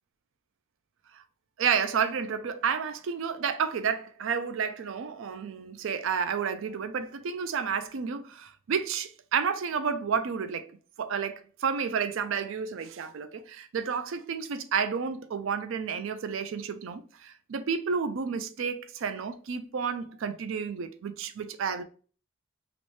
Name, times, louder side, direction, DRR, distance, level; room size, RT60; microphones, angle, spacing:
voice 1, 1.6-10.7 11.0-21.8, right 6 dB, 75° right, 0.4 m, -31 dB
3.0 x 3.0 x 3.1 m
head